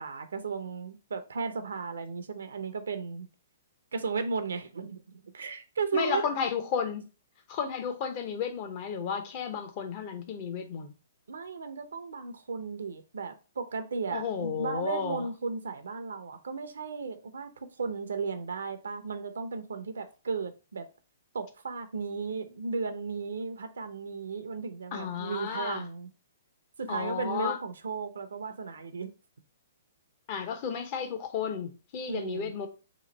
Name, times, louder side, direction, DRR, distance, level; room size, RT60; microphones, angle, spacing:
voice 1, 0.0-3.3 3.9-6.2 11.3-20.9 21.3-26.1 26.8-29.1 32.1-32.5, right 5 dB, 80° right, 0.6 m, -35 dB
voice 2, 5.9-7.0 7.5-10.9 14.1-15.2 24.9-25.8 26.9-27.6 30.3-32.7, left 7 dB, 40° left, 0.7 m, -33 dB
3.0 x 2.5 x 3.9 m
hypercardioid pair, 135°, 0 cm